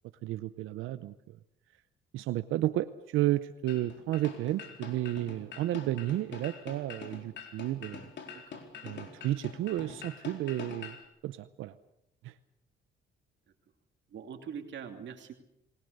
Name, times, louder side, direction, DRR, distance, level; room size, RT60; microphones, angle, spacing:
voice 1, 0.2-1.4 2.1-8.1 8.8-11.0 11.2-11.8 12.2-12.3, right 14 dB, 90° right, 12 dB, 0.8 m, -32 dB
sound 1, 3.7-11.0, left 6 dB, 65° left, 4.5 m, -45 dB
voice 2, 14.1-15.3, right 7 dB, 65° right, 4 dB, 2.7 m, -43 dB
27.5 x 19.5 x 6.7 m, 0.80 s
cardioid pair, 90°, 20 cm